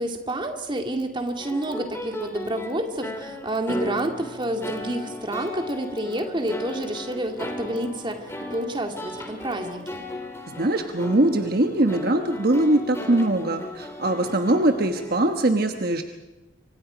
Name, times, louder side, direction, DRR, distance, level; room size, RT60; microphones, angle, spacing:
voice 1, 0.0-10.0, right 1 dB, 25° right, 4 dB, 2.3 m, -29 dB
sound 1, 1.4-15.4, left 1 dB, 15° left, 2.9 m, -36 dB
voice 2, 10.5-16.0, right 1 dB, 50° right, 6 dB, 1.2 m, -22 dB
27.0 x 25.5 x 5.1 m, 1.1 s
head